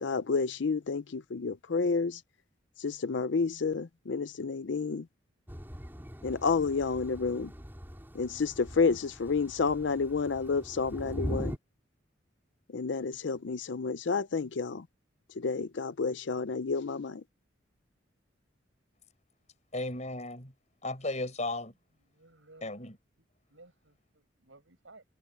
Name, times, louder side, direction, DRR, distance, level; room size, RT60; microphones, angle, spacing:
voice 1, 0.0-2.2 2.8-5.0 6.2-7.5 8.1-11.6 12.7-14.8 15.4-17.2, left 4 dB, 70° left, 0.5 m, -30 dB
Thunder / Rain, 5.5-11.6, equal, 10° right, 5.3 m, -41 dB
voice 2, 19.7-20.5 20.8-21.7 22.6-23.0, left 2 dB, 35° left, 6.8 m, -35 dB
voice 3, 22.1-22.7 23.5-25.0, right 2 dB, 80° right, 6.3 m, -57 dB
head